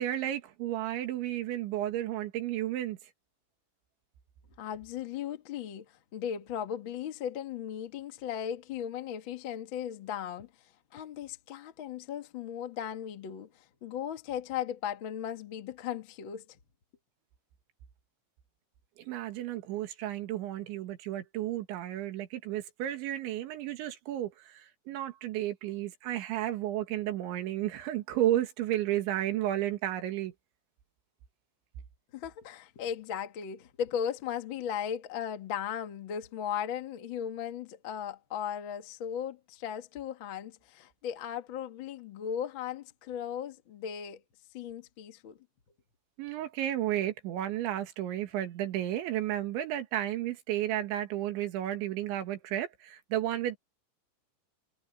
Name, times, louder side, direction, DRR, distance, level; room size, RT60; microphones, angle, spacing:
voice 1, 0.0-3.0 19.0-30.3 46.2-53.6, right 12 dB, 85° right, 4.2 m, -32 dB
voice 2, 4.6-10.5 10.9-16.5 32.1-44.2 44.5-45.4, left 9 dB, 85° left, 1.0 m, -37 dB
omnidirectional pair, 5.2 m